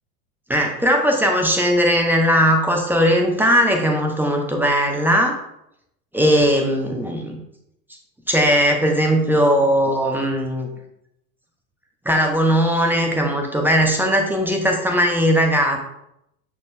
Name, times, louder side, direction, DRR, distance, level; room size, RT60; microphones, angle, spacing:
voice 1, 0.5-5.4 6.1-7.4 8.3-10.7 12.0-15.9, equal, 5° right, 2 dB, 0.8 m, -18 dB
8.2 x 5.2 x 2.3 m, 0.79 s
figure-of-eight pair, 80°, 47 cm